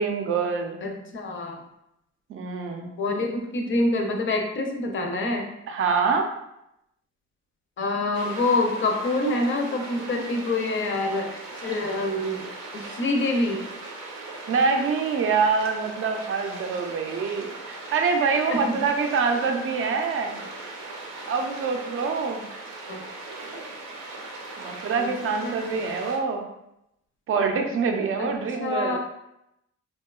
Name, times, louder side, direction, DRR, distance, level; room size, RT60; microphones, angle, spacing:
voice 1, 0.0-0.8 2.3-2.9 5.7-6.3 14.5-20.4 21.3-22.5 24.6-26.4 27.3-29.0, right 5 dB, 45° right, 4 dB, 0.4 m, -25 dB
voice 2, 0.8-1.6 3.0-5.5 7.8-12.5 12.7-13.6 18.5-18.8 22.9-23.0 25.0-25.6 28.2-28.3 28.6-29.0, left 2 dB, 40° left, 3 dB, 0.5 m, -26 dB
sound 1, 8.1-26.2, right 2 dB, 85° right, 0.6 m, -39 dB
2.7 x 2.2 x 2.3 m, 0.84 s
cardioid pair, 90°, 30 cm